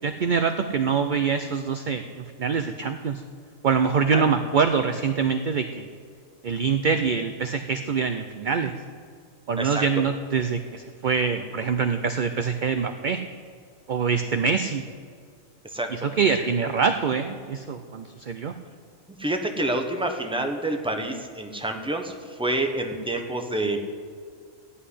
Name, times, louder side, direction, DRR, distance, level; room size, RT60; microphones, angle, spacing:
voice 1, 0.0-3.2 3.6-5.9 6.4-8.7 9.5-13.2 13.9-14.8 15.9-18.5, right 5 dB, 55° right, 8 dB, 0.5 m, -24 dB
voice 2, 19.2-23.9, right 1 dB, 5° right, 4 dB, 1.0 m, -28 dB
15.5 x 5.6 x 9.9 m, 2.2 s
omnidirectional pair, 1.4 m